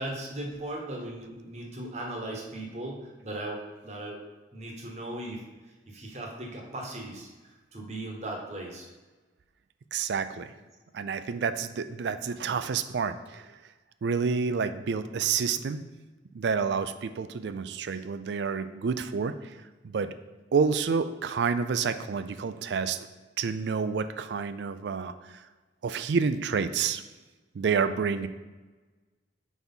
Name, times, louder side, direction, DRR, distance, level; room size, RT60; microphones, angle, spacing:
voice 1, 0.0-4.2 4.5-5.4 5.9-8.9, right 1 dB, 40° right, 0 dB, 1.0 m, -38 dB
voice 2, 9.9-10.5 10.9-13.4 14.0-15.8 16.3-19.3 19.8-20.1 20.5-23.1 23.4-25.4 25.8-27.0 27.5-28.3, right 5 dB, 75° right, 12 dB, 0.4 m, -29 dB
4.5 x 4.2 x 5.3 m, 1.2 s
head